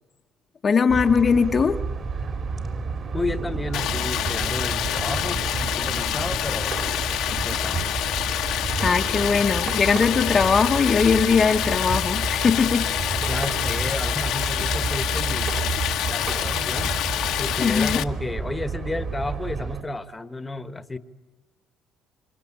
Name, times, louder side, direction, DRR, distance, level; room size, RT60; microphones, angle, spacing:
voice 1, 0.6-1.9 8.8-12.9 17.6-18.0, left 5 dB, 35° left, 1.0 m, -20 dB
sound 1, 0.9-19.8, right 4 dB, 40° right, 3.4 m, -30 dB
voice 2, 3.1-6.8 7.3-7.9 13.2-15.6 16.1-16.9 17.4-21.0, left 2 dB, 15° left, 1.3 m, -32 dB
Stream, 3.7-18.0, left 13 dB, 75° left, 1.2 m, -27 dB
27.5 x 25.0 x 8.7 m
cardioid pair, 115°, 0 cm